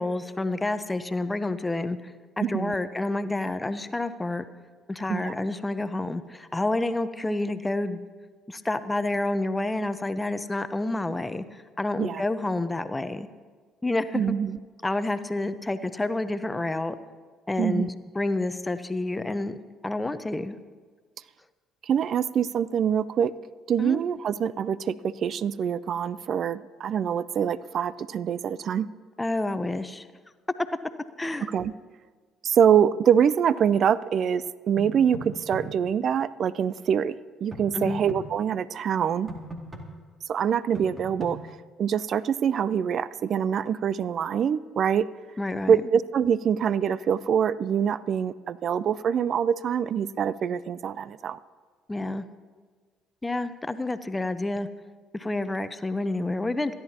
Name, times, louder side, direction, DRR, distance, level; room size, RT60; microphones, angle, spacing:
voice 1, 0.0-4.4 4.9-8.1 8.5-13.3 13.8-14.2 14.8-17.0 17.5-19.6 19.8-20.6 23.8-24.0 29.2-30.1 31.2-31.5 37.7-38.0 45.4-45.8 51.9-52.2 53.2-54.7 55.1-56.7, left 2 dB, 15° left, 11 dB, 0.8 m, -29 dB
voice 2, 2.4-2.8 5.1-5.3 12.0-12.2 14.1-14.6 17.6-17.9 21.8-23.3 23.7-28.9 31.5-31.7 32.4-39.3 40.3-41.4 41.8-45.1 45.7-51.4, right 8 dB, 55° right, 18 dB, 0.4 m, -25 dB
sound 1, 34.8-35.6 37.5-38.2 39.3-39.8 40.7-41.3, equal, 25° right, 2.3 m, -37 dB
27.5 x 11.0 x 2.9 m, 1.5 s
hypercardioid pair, 60°, 0 cm